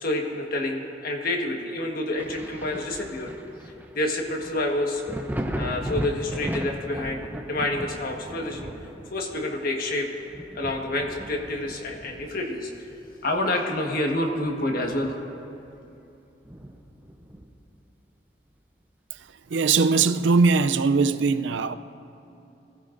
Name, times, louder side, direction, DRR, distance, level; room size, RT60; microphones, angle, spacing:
voice 1, 0.0-3.3 3.9-5.0 5.5-8.7 9.1-10.1 10.5-12.7 13.2-15.2, left 1 dB, 55° left, 2 dB, 1.5 m, -28 dB
Thunder, 2.2-13.5 13.9-15.4 15.8-15.9 16.4-17.7 19.2-19.3, equal, 10° right, 0.7 m, -37 dB
voice 2, 19.5-21.7, right 4 dB, 90° right, 12 dB, 0.5 m, -20 dB
22.0 x 15.5 x 2.6 m, 2.9 s
head